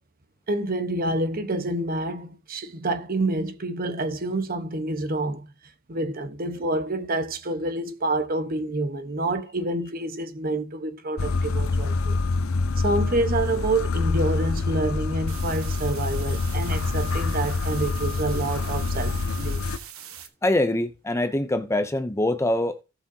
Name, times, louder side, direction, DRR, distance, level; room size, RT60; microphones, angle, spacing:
voice 1, 0.5-5.5 5.9-12.2 12.8-19.6, right 2 dB, 45° right, 1.1 m, -28 dB
sound 1, 11.2-19.8, left 3 dB, 80° left, 0.7 m, -26 dB
sound 2, 15.3-20.3, right 9 dB, 90° right, 1.3 m, -42 dB
voice 2, 20.4-22.8, left 1 dB, 15° left, 0.5 m, -24 dB
18.0 x 6.0 x 2.8 m
head